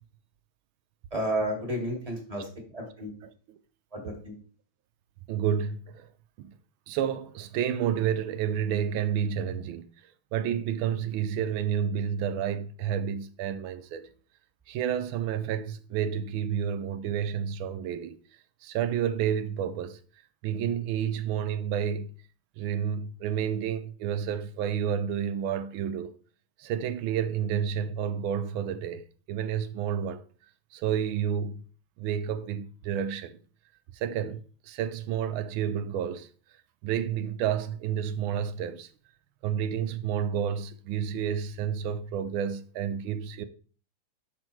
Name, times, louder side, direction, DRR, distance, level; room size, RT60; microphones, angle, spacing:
voice 1, 1.1-2.4 2.7-3.1 3.9-4.3, right 1 dB, 20° right, 1.7 m, -31 dB
voice 2, 3.2-3.6 5.3-6.1 6.4-6.5 6.9-9.9 10.3-14.1 14.7-18.2 18.6-20.0 20.4-22.1 22.6-26.1 26.6-30.2 30.7-31.6 32.0-33.4 33.9-36.3 36.8-38.9 39.4-43.5, right 8 dB, 85° right, 1.4 m, -30 dB
6.2 x 5.4 x 4.5 m
omnidirectional pair, 2.2 m